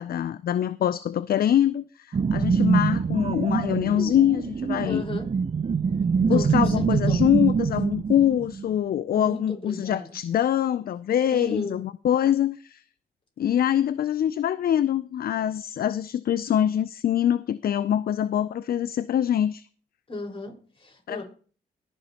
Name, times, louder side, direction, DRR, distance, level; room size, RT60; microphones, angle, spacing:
voice 1, 0.0-5.0 6.2-12.8 13.4-19.6 21.1-21.2, left 10 dB, 55° left, 0.4 m, -24 dB
sound 1, 2.1-8.9, right 5 dB, 35° right, 0.6 m, -24 dB
voice 2, 4.8-5.3 6.2-7.2 9.1-10.1 11.3-11.8 20.1-21.2, left 2 dB, 30° left, 4.6 m, -35 dB
20.0 x 6.9 x 2.9 m
cardioid pair, 65°, 19 cm